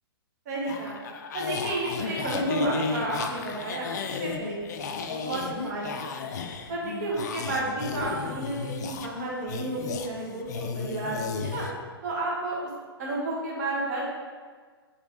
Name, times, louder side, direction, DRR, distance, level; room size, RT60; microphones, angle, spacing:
voice 1, 0.4-1.0 1.3-6.0 6.2-6.3 6.7-11.7 12.0-12.6 13.0-14.0, right 2 dB, 40° right, -4 dB, 1.1 m, -32 dB
sound 1, 0.7-11.7, left 5 dB, 45° left, 0.4 m, -34 dB
5.0 x 3.3 x 2.9 m, 1.5 s
figure-of-eight pair, 120°, 13 cm